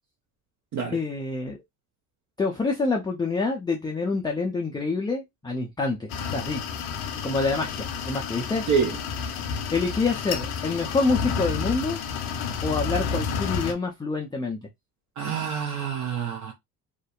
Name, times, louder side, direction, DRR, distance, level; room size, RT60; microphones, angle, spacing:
voice 1, 0.9-1.6 2.4-6.6 7.2-8.6 9.3-9.5 9.7-12.0 12.6-14.6, left 3 dB, 10° left, 0.4 m, -27 dB
sound 1, 6.1-13.7, left 6 dB, 75° left, 0.6 m, -30 dB
voice 2, 15.2-16.5, right 6 dB, 40° right, 0.6 m, -26 dB
2.6 x 2.1 x 2.3 m
hypercardioid pair, 70°, 45 cm